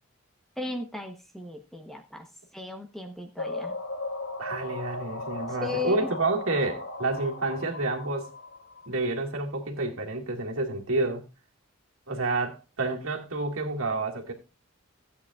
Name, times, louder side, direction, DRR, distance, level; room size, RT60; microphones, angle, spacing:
voice 1, 0.6-2.2 2.5-3.7 5.5-6.1, left 3 dB, ahead, 0.9 m, -36 dB
sound 1, 3.4-9.1, left 2 dB, 75° left, 3.0 m, -37 dB
voice 2, 4.4-8.3 8.9-11.2 12.1-14.3, right 2 dB, 75° right, 2.0 m, -29 dB
15.0 x 8.6 x 2.4 m
head